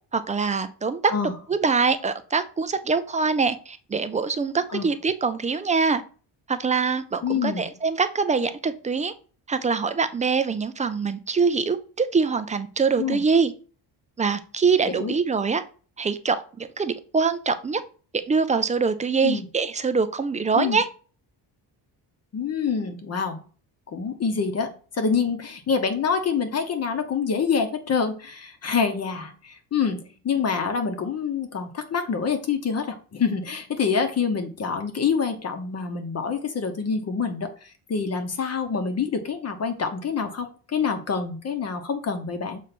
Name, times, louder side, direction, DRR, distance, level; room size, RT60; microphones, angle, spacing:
voice 1, 0.1-1.0 1.5-6.0 6.5-9.1 9.5-13.5 14.2-15.6 16.0-17.8 18.3-20.9, right 5 dB, 20° right, 11 dB, 0.3 m, -24 dB
voice 2, 7.2-7.7 13.0-13.2 14.9-15.2 19.2-19.5 20.5-20.8 22.3-23.4 23.9-42.6, left 6 dB, 35° left, 7 dB, 0.9 m, -26 dB
6.7 x 3.1 x 5.9 m, 0.38 s
cardioid pair, 170°, 43 cm